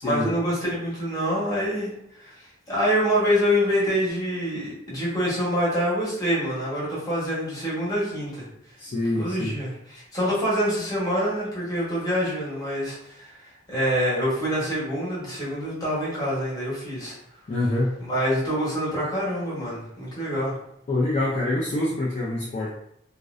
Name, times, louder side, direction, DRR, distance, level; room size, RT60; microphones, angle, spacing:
voice 1, 0.0-1.9 2.2-2.3 2.7-8.5 9.1-17.1 18.1-20.6, equal, 20° left, -7 dB, 1.0 m, -26 dB
voice 2, 8.8-9.5 17.5-17.9 20.9-22.7, left 1 dB, 40° left, -5 dB, 0.4 m, -25 dB
2.5 x 2.1 x 2.4 m, 0.74 s
head